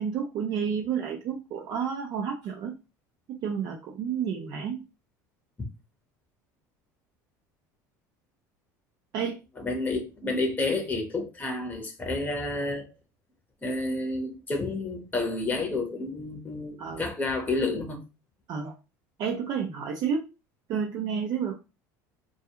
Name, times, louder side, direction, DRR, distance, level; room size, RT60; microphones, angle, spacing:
voice 1, 0.0-2.7 3.3-4.8 9.1-9.4 16.8-17.1 18.5-18.8 19.2-20.3 20.7-21.5, right 7 dB, 55° right, 0.5 m, -30 dB
voice 2, 9.6-12.9 13.6-18.0, left 2 dB, 15° left, 0.8 m, -30 dB
2.3 x 2.3 x 2.9 m
supercardioid pair, 95°, 9 cm